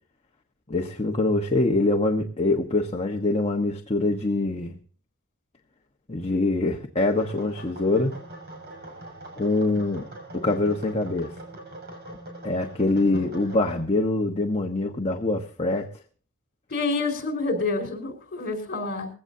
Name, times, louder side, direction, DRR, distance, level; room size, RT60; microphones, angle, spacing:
voice 1, 0.7-4.7 6.1-8.2 9.4-10.1 10.3-11.3 12.4-15.9, left 2 dB, 30° left, 1.2 m, -24 dB
sound 1, 7.1-13.8, right 1 dB, 50° right, 6.0 m, -42 dB
voice 2, 16.7-19.1, left 3 dB, 45° left, 4.8 m, -28 dB
20.5 x 16.5 x 2.7 m
head